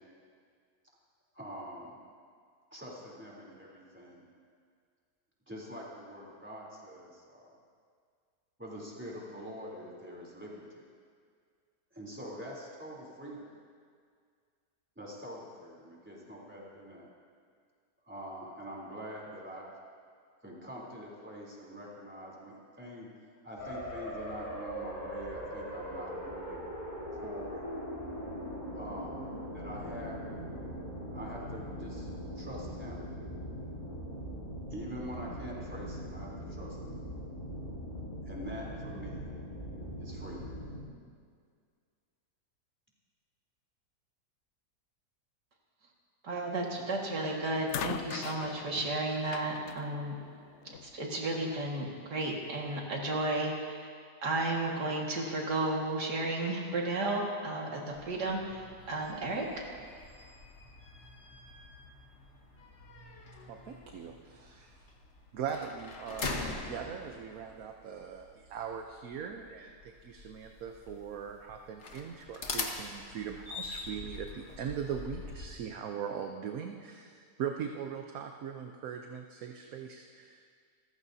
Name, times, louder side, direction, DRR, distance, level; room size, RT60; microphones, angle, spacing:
voice 1, 1.3-2.0 2.7-4.3 5.5-7.5 8.6-10.9 11.9-13.5 15.0-17.1 18.1-19.7 20.4-23.1 23.4-26.6 27.2-27.7 28.7-29.3 29.5-30.3 31.1-32.1 32.4-33.1 34.7-37.0 38.3-39.3 40.0-40.5, equal, 5° right, -5 dB, 3.4 m, -44 dB
sound 1, 23.6-40.8, equal, 30° left, 3.7 m, -41 dB
voice 2, 46.2-50.2 50.8-53.9 54.2-59.7, right 2 dB, 85° right, -1 dB, 2.5 m, -33 dB
sound 2, 46.8-47.1 47.7-51.0 52.0-52.1, left 10 dB, 80° left, 0.6 m, -41 dB
sound 3, 57.9-75.5, left 3 dB, 45° left, 1.4 m, -44 dB
voice 3, 63.5-64.9 65.3-80.4, right 7 dB, 65° right, 3 dB, 1.2 m, -40 dB
28.5 x 14.5 x 2.8 m, 2.1 s
omnidirectional pair, 1.7 m